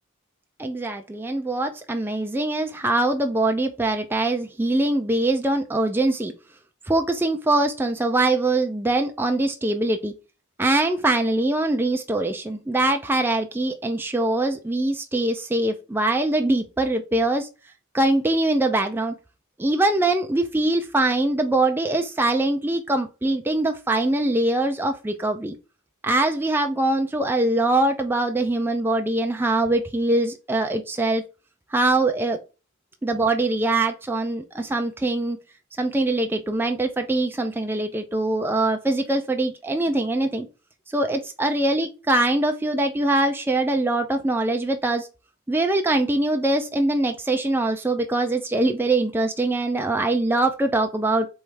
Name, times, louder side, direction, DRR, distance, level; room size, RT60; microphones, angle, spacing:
voice 1, 0.6-6.3 6.9-10.1 10.6-17.5 17.9-19.1 19.6-25.5 26.0-31.2 31.7-32.4 33.0-35.4 35.8-40.5 40.9-45.1 45.5-51.3, right 2 dB, 10° right, 0.3 m, -23 dB
3.4 x 3.1 x 4.8 m
head